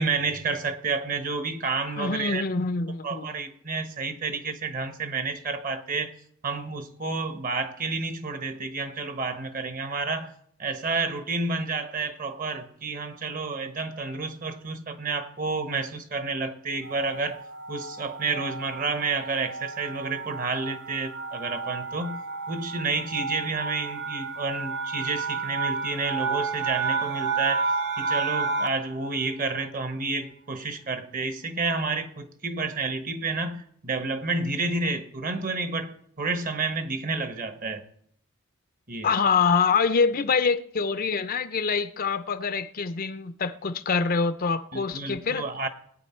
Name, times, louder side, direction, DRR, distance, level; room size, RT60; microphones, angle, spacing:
voice 1, 0.0-2.4 3.0-6.1 6.4-10.3 10.6-17.4 17.7-22.2 22.5-27.7 28.0-37.8 38.9-39.1 44.7-45.7, right 3 dB, 40° right, 1.2 m, -30 dB
voice 2, 2.0-3.3 39.0-45.5, left 5 dB, 40° left, 0.6 m, -25 dB
sound 1, 16.8-28.9, right 4 dB, 55° right, 0.8 m, -31 dB
19.5 x 9.1 x 4.4 m
head